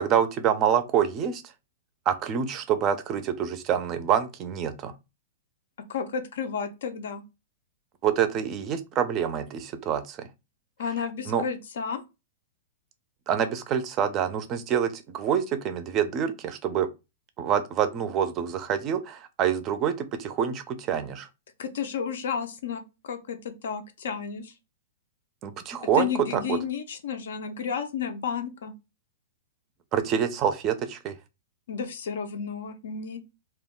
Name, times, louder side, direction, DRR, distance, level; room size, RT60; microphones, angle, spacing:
voice 1, 0.0-1.4 2.1-4.9 8.0-10.3 11.3-11.5 13.3-16.9 17.4-21.3 25.4-26.6 29.9-31.1, right 8 dB, 30° right, 0.4 m, -26 dB
voice 2, 5.9-7.2 10.8-12.0 21.6-24.5 26.0-28.7 31.7-33.2, left 7 dB, 75° left, 0.5 m, -32 dB
2.2 x 2.1 x 3.6 m
hypercardioid pair, 150°, 0 cm